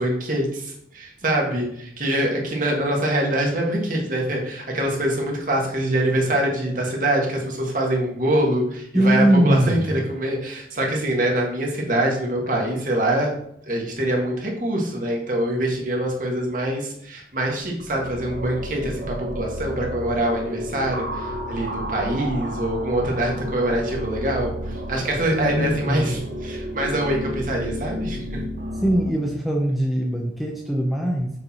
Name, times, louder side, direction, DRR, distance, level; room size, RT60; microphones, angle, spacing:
voice 1, 0.0-13.3 13.7-24.5 24.9-28.5, right 1 dB, 50° right, -1 dB, 1.6 m, -24 dB
voice 2, 8.9-9.9 25.3-26.2 28.7-31.3, right 1 dB, ahead, 0 dB, 0.6 m, -21 dB
sound 1, 17.6-29.1, equal, 70° right, 1.0 m, -32 dB
6.5 x 4.5 x 4.3 m, 0.71 s
head